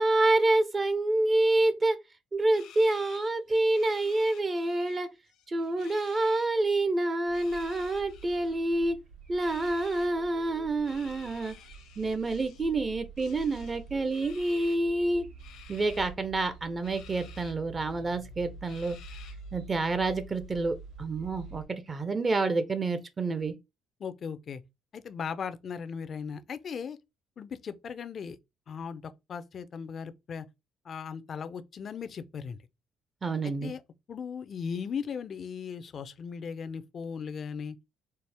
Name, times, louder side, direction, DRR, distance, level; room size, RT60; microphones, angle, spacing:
voice 1, 0.0-2.0 2.3-5.1 5.5-9.0 9.3-11.5 12.0-15.2 15.7-19.0 19.5-23.5 33.2-33.7, right 2 dB, 30° right, 0.6 m, -28 dB
sound 1, 2.5-5.0 5.3-6.5 7.2-8.6 9.4-10.1 10.8-12.7 13.2-14.8 15.4-16.1 16.8-17.5 18.0-18.1 18.7-19.5, left 9 dB, 75° left, 0.8 m, -53 dB
sound 2, 7.3-21.7, right 4 dB, 70° right, 2.5 m, -48 dB
voice 2, 24.0-24.6 24.9-27.0 27.4-28.4 28.7-29.0 29.3-30.5 30.9-32.6 33.4-33.8 34.1-37.8, left 6 dB, 50° left, 0.4 m, -37 dB
4.3 x 2.0 x 3.3 m
supercardioid pair, 85°, 0 cm